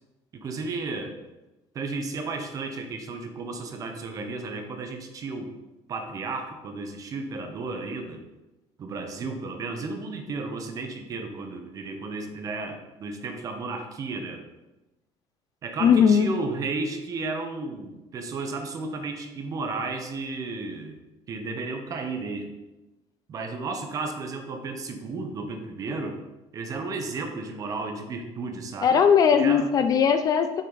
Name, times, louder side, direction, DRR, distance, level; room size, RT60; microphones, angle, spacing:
voice 1, 0.3-1.1 1.7-5.5 5.9-8.2 8.8-14.4 15.6-21.0 21.3-22.5 23.3-26.2 26.5-29.0 29.3-29.7, right 3 dB, 30° right, 5 dB, 0.9 m, -33 dB
voice 2, 15.8-16.3 28.8-30.6, left 7 dB, 30° left, 9 dB, 0.4 m, -19 dB
7.5 x 6.5 x 4.0 m, 1.0 s
cardioid pair, 180°, 12 cm